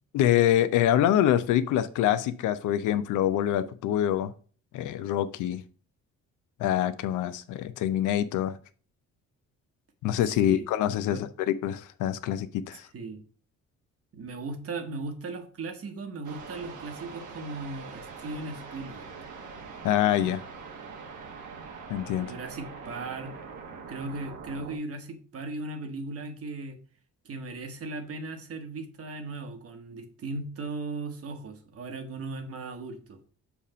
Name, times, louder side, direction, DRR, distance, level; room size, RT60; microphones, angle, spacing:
voice 1, 0.1-4.3 4.7-5.6 6.6-8.6 10.0-12.8 19.8-20.4 21.9-22.3, left 11 dB, 80° left, 11 dB, 0.5 m, -25 dB
voice 2, 10.2-10.7 11.1-11.2 12.9-13.2 14.1-19.1 22.2-23.3 23.9-26.8 27.2-33.2, right 3 dB, 50° right, 6 dB, 1.1 m, -37 dB
sound 1, 16.2-24.8, right 5 dB, 75° right, 1.1 m, -43 dB
7.1 x 2.5 x 5.4 m, 0.42 s
cardioid pair, 90°, 30 cm